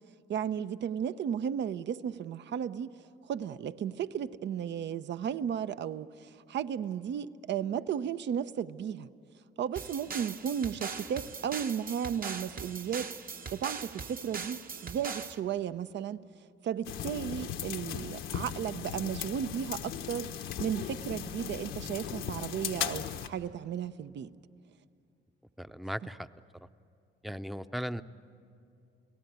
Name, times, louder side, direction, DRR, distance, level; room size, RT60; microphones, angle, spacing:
voice 1, 0.3-2.9 3.3-9.1 9.6-13.1 13.5-16.2 16.6-20.3 20.6-24.3, right 8 dB, 65° right, 14 dB, 0.7 m, -34 dB
sound 1, 9.8-15.4, right 5 dB, 45° right, 1.2 m, -40 dB
sound 2, 16.8-23.3, left 9 dB, 85° left, 1.2 m, -37 dB
voice 2, 25.6-26.3 27.2-28.0, equal, ahead, 11 dB, 0.7 m, -37 dB
29.5 x 18.0 x 9.4 m, 2.5 s
cardioid pair, 90°, 20 cm